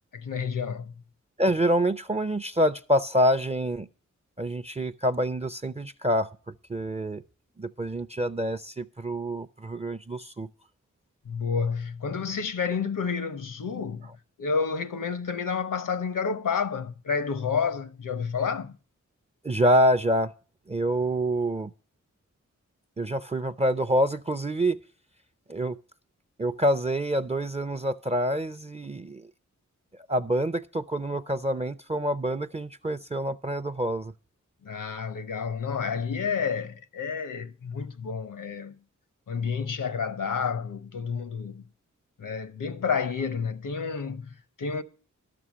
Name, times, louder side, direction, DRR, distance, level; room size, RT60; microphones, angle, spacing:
voice 1, 0.1-0.9 11.2-14.1 14.4-18.8 34.6-38.7 39.3-41.6 42.2-44.8, left 6 dB, 85° left, 0.9 m, -30 dB
voice 2, 1.4-3.9 4.4-6.3 6.7-7.2 7.6-10.5 19.4-20.3 20.7-21.7 23.0-24.8 25.5-25.8 26.4-29.3 30.1-34.1, equal, 20° right, 0.5 m, -26 dB
12.5 x 6.9 x 6.1 m
cardioid pair, 60°, 31 cm